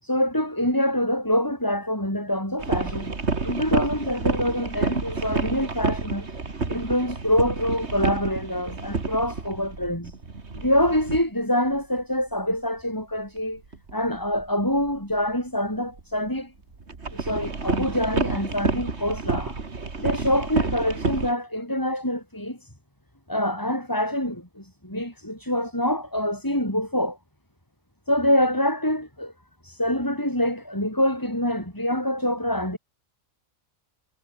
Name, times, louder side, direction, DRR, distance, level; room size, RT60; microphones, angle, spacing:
voice 1, 0.0-3.1 3.4-6.3 6.7-10.1 10.5-13.6 13.9-16.5 17.1-19.6 20.0-22.7 23.3-27.2 28.1-29.3 29.6-32.8, left 1 dB, 15° left, 6.4 m, -25 dB
sound 1, 2.6-11.2 12.0-12.1 13.6-14.4 14.8-15.2 16.0-16.1 16.3-16.4 16.7-21.3, right 4 dB, 55° right, 2.7 m, -29 dB
omnidirectional pair, 1.4 m